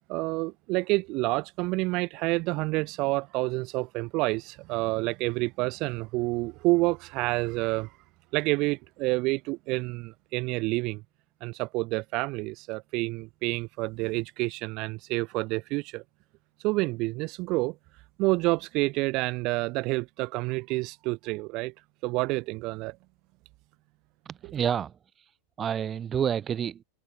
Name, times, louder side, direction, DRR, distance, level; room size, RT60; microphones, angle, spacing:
voice 1, 0.1-7.9 8.3-11.0 11.4-16.0 16.6-17.8 18.2-21.7 22.0-23.0, right 23 dB, 40° right, 1.0 m, -28 dB
voice 2, 24.3-25.3 25.6-26.8, right 8 dB, 25° right, 0.5 m, -29 dB
figure-of-eight pair, 90°, 0 cm